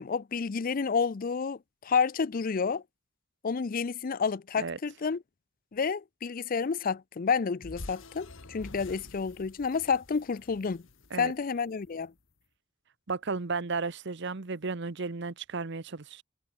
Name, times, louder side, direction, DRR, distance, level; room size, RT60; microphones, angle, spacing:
voice 1, 0.0-2.8 3.4-5.2 5.7-10.8 11.2-12.1, left 5 dB, 45° left, 0.5 m, -30 dB
sound 1, 7.6-12.0, left 2 dB, 75° left, 1.7 m, -48 dB
voice 2, 13.1-16.2, right 4 dB, 60° right, 0.9 m, -34 dB
head